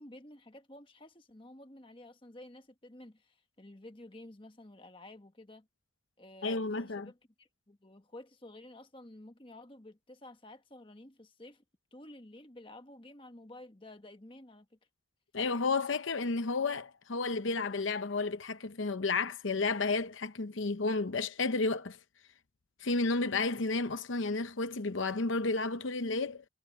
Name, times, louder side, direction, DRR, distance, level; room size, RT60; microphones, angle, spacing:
voice 1, 0.0-5.7 6.2-11.6 11.9-14.7, left 1 dB, 25° left, 1.4 m, -52 dB
voice 2, 6.4-7.1 15.3-22.0 22.8-26.4, left 3 dB, 75° left, 0.8 m, -32 dB
head